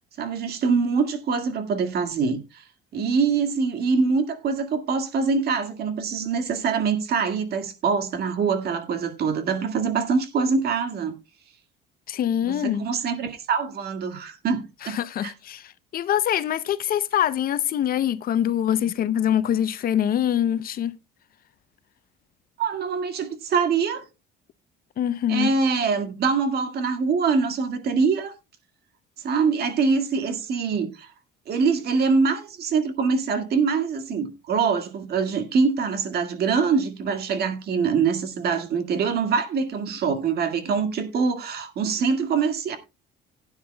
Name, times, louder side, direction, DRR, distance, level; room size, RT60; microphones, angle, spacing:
voice 1, 0.2-2.6 2.9-11.2 12.4-15.3 22.6-24.1 25.3-28.3 29.2-31.1 31.5-42.8, right 5 dB, 55° right, 1.9 m, -24 dB
voice 2, 12.1-12.8 14.8-20.9 25.0-25.5, left 10 dB, 50° left, 0.6 m, -24 dB
16.5 x 9.6 x 2.2 m
cardioid pair, 115°, 20 cm